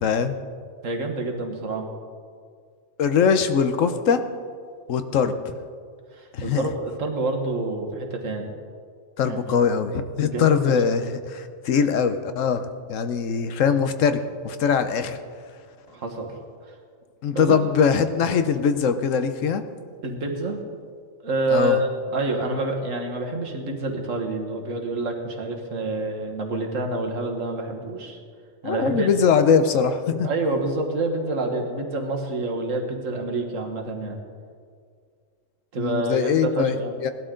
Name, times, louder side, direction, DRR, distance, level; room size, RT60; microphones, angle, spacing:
voice 1, 0.0-0.3 3.0-4.2 4.9-5.3 6.3-6.7 9.2-15.2 17.2-19.6 21.5-21.8 28.6-30.3 35.8-36.7 37.0-37.1, left 6 dB, 80° left, 10 dB, 1.2 m, -22 dB
voice 2, 0.8-1.9 5.2-5.3 6.1-8.5 9.3-9.6 10.2-10.8 15.9-16.3 17.3-17.6 20.0-20.6 21.2-28.2 28.6-29.1 30.2-34.2 35.7-36.9, right 2 dB, 85° right, 2 dB, 1.9 m, -27 dB
18.0 x 12.0 x 3.8 m, 2.1 s
omnidirectional pair, 1.3 m